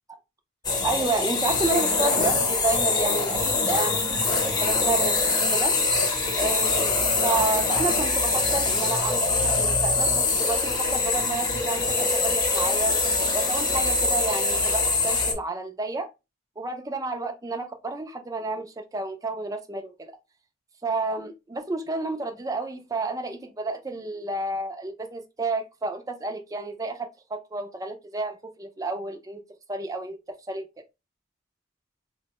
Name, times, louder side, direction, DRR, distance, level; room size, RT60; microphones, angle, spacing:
sound 1, 0.6-15.3, left 3 dB, 20° left, 0.8 m, -24 dB
voice 1, 0.8-5.1 5.5-5.8 6.3-6.9 7.2-13.0 13.3-16.1 16.6-20.1 20.8-29.4 29.7-30.7, right 3 dB, 15° right, 0.4 m, -30 dB
4.4 x 2.1 x 2.8 m
head